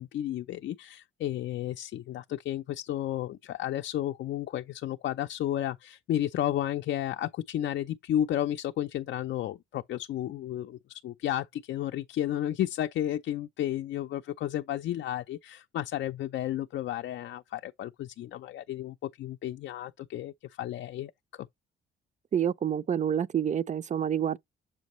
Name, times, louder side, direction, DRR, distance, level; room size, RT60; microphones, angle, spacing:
voice 1, 0.0-21.5, left 12 dB, 65° left, 0.5 m, -32 dB
voice 2, 22.3-24.4, right 9 dB, 35° right, 0.5 m, -28 dB
7.3 x 5.2 x 3.0 m
cardioid pair, 90°, 20 cm